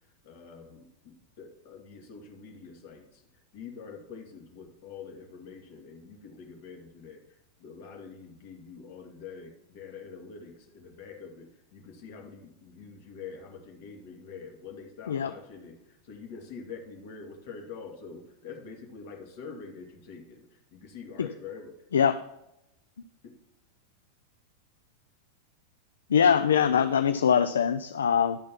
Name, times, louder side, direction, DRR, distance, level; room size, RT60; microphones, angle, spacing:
voice 1, 0.2-3.2 3.5-21.8 23.2-23.3, left 5 dB, 50° left, 1 dB, 2.0 m, -45 dB
voice 2, 21.9-22.2 26.1-28.4, left 7 dB, 65° left, 10 dB, 0.3 m, -23 dB
11.0 x 4.2 x 5.8 m, 0.86 s
figure-of-eight pair, 90°, 0 cm